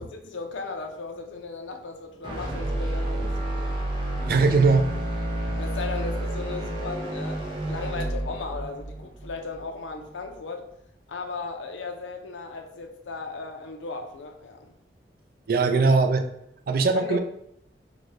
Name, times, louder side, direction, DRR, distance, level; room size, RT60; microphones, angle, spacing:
voice 1, 0.0-3.7 5.6-10.6 11.1-14.7 16.9-17.2, left 4 dB, 90° left, 4 dB, 0.5 m, -36 dB
sound 1, 2.2-10.4, right 1 dB, 25° right, 0.7 m, -30 dB
voice 2, 4.3-4.9 5.5-5.6 15.5-16.2 16.7-17.2, right 4 dB, 50° right, 7 dB, 0.3 m, -20 dB
3.9 x 2.2 x 3.1 m, 0.76 s
head